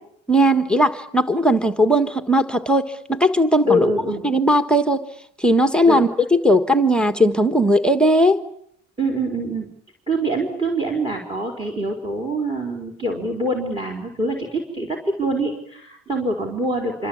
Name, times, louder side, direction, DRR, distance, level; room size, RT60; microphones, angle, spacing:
voice 1, 0.3-3.9 4.2-5.0 5.4-8.4, equal, 5° left, 7 dB, 1.4 m, -18 dB
voice 2, 3.7-4.2 5.9-6.0 9.0-9.7 10.1-17.1, right 1 dB, 15° right, 2 dB, 4.4 m, -24 dB
27.0 x 25.5 x 8.8 m, 0.70 s
cardioid pair, 150°, 33 cm